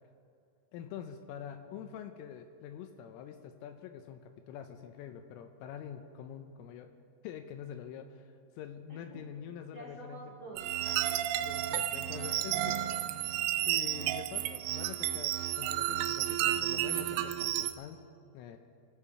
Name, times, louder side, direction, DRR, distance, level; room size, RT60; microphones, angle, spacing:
voice 1, 0.7-6.9 7.2-10.3 11.4-12.7 13.7-18.0 18.3-18.6, left 8 dB, 80° left, 6 dB, 3.2 m, -45 dB
voice 2, 9.7-11.5 11.8-12.8, right 3 dB, 20° right, -6 dB, 3.3 m, -50 dB
sound 1, 10.6-17.7, right 13 dB, 85° right, 3.4 m, -32 dB
26.5 x 8.9 x 4.8 m, 2.4 s
omnidirectional pair, 6.0 m